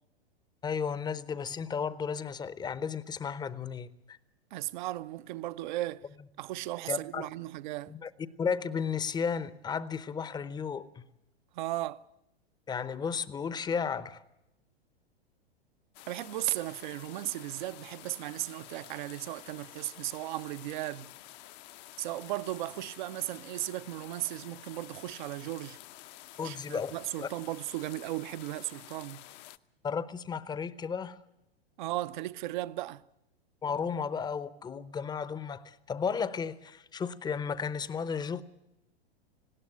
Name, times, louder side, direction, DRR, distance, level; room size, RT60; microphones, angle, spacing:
voice 1, 0.6-4.2 6.9-7.3 7.9-8.1 8.4-11.0 12.7-14.2 26.4-26.9 27.2-27.3 29.8-31.2 33.6-38.4, left 6 dB, 15° left, 0.8 m, -34 dB
voice 2, 4.5-6.1 6.4-7.9 11.5-12.0 16.1-21.1 22.0-25.8 26.4-29.2 31.8-33.0, right 16 dB, 50° right, 0.7 m, -36 dB
sound 1, 15.9-29.6, left 16 dB, 45° left, 0.8 m, -50 dB
19.0 x 17.5 x 8.9 m
figure-of-eight pair, 100°, 31 cm